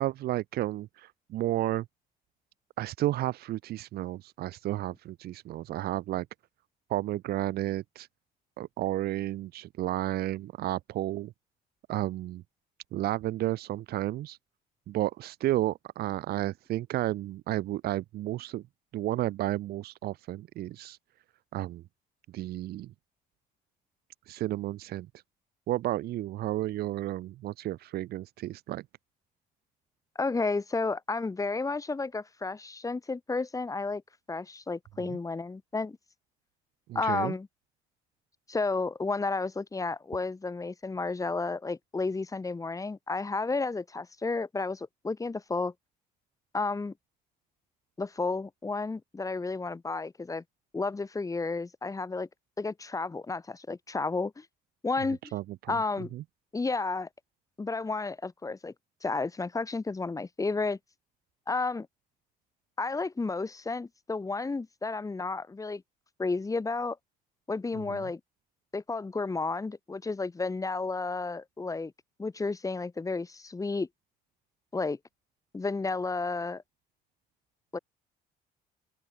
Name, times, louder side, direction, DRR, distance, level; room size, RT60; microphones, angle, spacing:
voice 1, 0.0-1.8 2.8-6.3 6.9-8.1 8.6-11.3 11.9-12.4 12.9-14.4 14.9-18.6 18.9-21.0 21.5-21.8 22.3-22.9 24.3-25.1 25.7-28.8 35.0-35.2 36.9-37.3 55.3-55.8 56.1-56.2 67.9-68.0, right 15 dB, 70° right, 1.0 m, -32 dB
voice 2, 30.2-34.0 34.3-36.0 36.9-37.5 38.5-45.7 46.5-46.9 48.0-50.4 50.7-52.3 52.6-54.5 54.8-55.3 55.7-56.1 56.5-57.1 57.6-58.7 59.0-60.8 61.5-61.9 62.8-65.8 66.2-67.0 67.5-68.2 68.7-71.9 72.2-73.9 74.7-75.0 75.5-76.6 77.7-77.8, left 3 dB, 20° left, 4.1 m, -32 dB
open air
cardioid pair, 110°, 17 cm